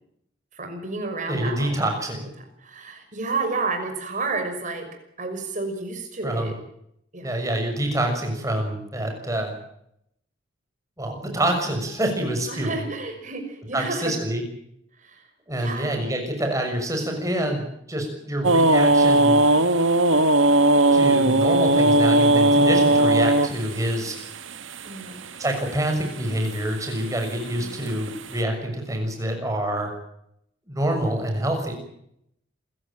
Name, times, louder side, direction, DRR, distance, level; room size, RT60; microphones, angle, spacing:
voice 1, 0.5-1.7 2.6-4.9 5.2-6.6 7.1-7.3 12.5-14.1 15.0-15.2 15.6-16.0 24.8-25.3 27.5-27.8, right 3 dB, 40° right, 5 dB, 5.9 m, -31 dB
voice 2, 1.3-2.3 6.2-6.5 7.2-9.5 11.0-12.8 13.7-14.4 15.5-19.4 20.9-24.1 25.4-29.9 30.7-31.7, right 1 dB, 15° right, 3 dB, 6.6 m, -26 dB
sound 1, 18.4-25.4 26.2-26.6 26.9-28.2, right 2 dB, 80° right, 1.8 m, -18 dB
27.0 x 16.0 x 9.1 m, 0.76 s
head